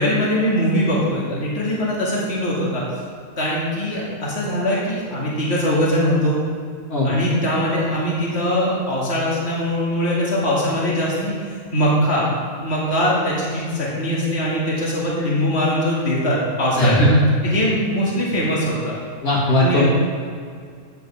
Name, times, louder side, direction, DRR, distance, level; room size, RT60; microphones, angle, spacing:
voice 1, 0.0-2.8 3.4-6.4 7.0-12.3 12.6-17.0 17.4-19.0 19.6-19.8, equal, 50° left, -6 dB, 2.6 m, -21 dB
voice 2, 16.8-17.2 19.2-19.8, left 1 dB, 85° left, -6 dB, 2.8 m, -17 dB
15.0 x 7.9 x 3.5 m, 2.1 s
omnidirectional pair, 1.5 m